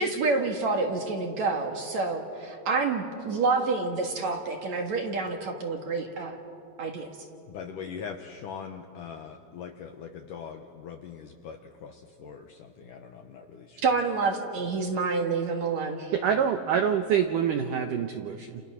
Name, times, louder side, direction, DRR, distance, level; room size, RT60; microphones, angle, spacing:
voice 1, 0.0-6.4 6.8-7.1 13.8-16.1, right 4 dB, 55° right, 3 dB, 2.4 m, -28 dB
voice 2, 7.5-13.8, left 6 dB, 70° left, 5 dB, 2.0 m, -41 dB
voice 3, 16.1-18.6, right 8 dB, 75° right, 6 dB, 1.9 m, -26 dB
29.5 x 29.5 x 6.3 m, 2.5 s
omnidirectional pair, 5.0 m